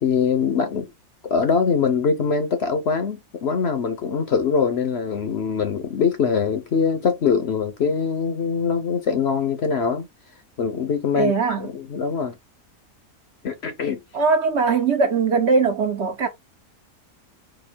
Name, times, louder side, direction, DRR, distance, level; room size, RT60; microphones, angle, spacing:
voice 1, 0.0-0.9 1.2-10.1 10.6-12.3 13.4-14.0, left 6 dB, 55° left, 0.8 m, -23 dB
voice 2, 11.1-11.7 14.1-16.3, right 4 dB, 55° right, 0.9 m, -20 dB
4.3 x 2.6 x 4.3 m
omnidirectional pair, 1.6 m